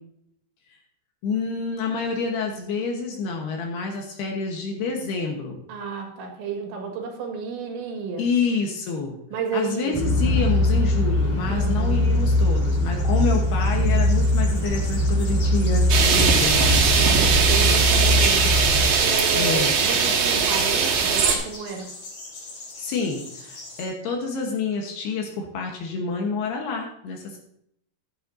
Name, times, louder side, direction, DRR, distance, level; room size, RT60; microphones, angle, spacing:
voice 1, 1.2-5.6 8.2-9.2 9.5-16.8 19.4-19.7 22.8-27.4, left 4 dB, 70° left, 1 dB, 3.0 m, -28 dB
voice 2, 5.7-8.2 9.3-10.0 11.5-12.0 16.9-21.9, right 5 dB, 85° right, 2 dB, 4.1 m, -32 dB
sound 1, 9.9-18.9, left 1 dB, 5° left, 4.0 m, -21 dB
sound 2, 10.4-23.8, left 2 dB, 45° left, 4.1 m, -41 dB
sound 3, 15.9-21.4, right 5 dB, 65° right, 3.0 m, -20 dB
13.5 x 11.0 x 2.7 m, 0.71 s
omnidirectional pair, 5.2 m